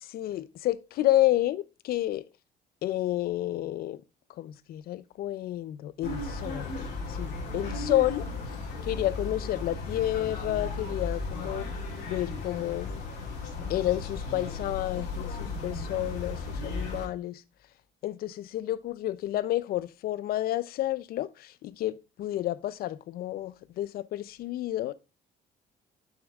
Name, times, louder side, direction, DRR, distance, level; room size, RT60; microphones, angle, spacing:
voice 1, 0.0-2.2 2.8-4.0 4.4-6.7 7.1-8.3 8.8-11.7 12.1-13.0 13.7-17.4 18.0-24.9, left 14 dB, 60° left, 0.5 m, -30 dB
sound 1, 6.0-17.1, left 3 dB, 80° left, 2.7 m, -35 dB
6.4 x 6.2 x 2.4 m
cardioid pair, 110°, 17 cm